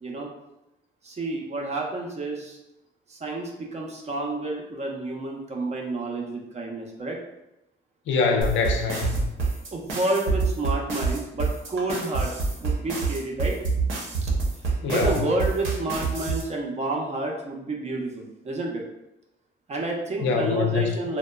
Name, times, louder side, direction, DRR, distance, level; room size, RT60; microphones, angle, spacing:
voice 1, 1.0-2.6 3.1-7.2 9.7-13.6 14.2-14.3 14.9-18.8 19.7-21.2, right 2 dB, 35° right, -1 dB, 0.5 m, -29 dB
voice 2, 8.1-9.2 14.8-15.2 20.2-20.9, left 5 dB, 70° left, 3 dB, 0.5 m, -24 dB
sound 1, 8.4-16.4, right 4 dB, 80° right, 0.7 m, -26 dB
2.9 x 2.1 x 2.2 m, 0.89 s
cardioid pair, 90°, 20 cm